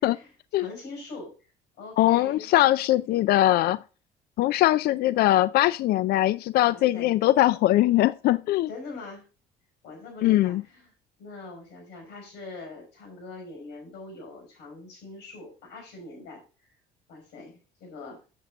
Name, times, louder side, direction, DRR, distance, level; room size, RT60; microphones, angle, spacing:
voice 1, 0.0-2.5 6.6-7.1 8.7-9.2 9.8-10.9 11.2-16.7 17.1-18.2, left 3 dB, 80° left, 4.7 m, -43 dB
voice 2, 2.0-3.8 4.4-8.7 10.2-10.6, left 15 dB, 65° left, 0.4 m, -21 dB
7.9 x 7.5 x 3.5 m
cardioid pair, 110°, 17 cm